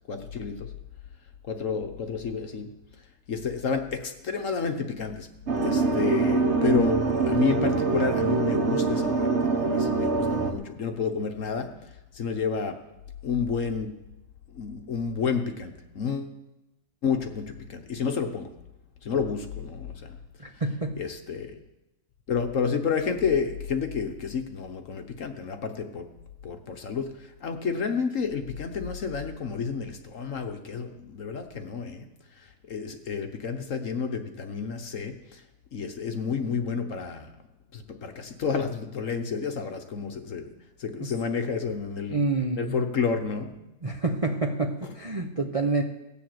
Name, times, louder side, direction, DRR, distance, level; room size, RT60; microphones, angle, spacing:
voice 1, 0.1-0.7 1.4-2.7 3.3-5.3 5.6-11.7 12.1-12.8 13.2-13.9 14.5-16.3 17.0-18.5 19.0-20.2 21.0-21.6 22.3-26.1 26.4-32.1 32.4-35.4 35.7-37.3 37.7-40.5 40.8-42.2 42.6-43.6, left 6 dB, 50° left, 6 dB, 1.1 m, -30 dB
sound 1, 5.5-10.5, right 4 dB, 40° right, 1.2 m, -24 dB
voice 2, 20.4-20.9 41.0-41.1 42.1-42.8 43.8-45.8, right 3 dB, 60° right, 3 dB, 0.3 m, -28 dB
17.5 x 7.1 x 7.8 m, 0.98 s
omnidirectional pair, 2.1 m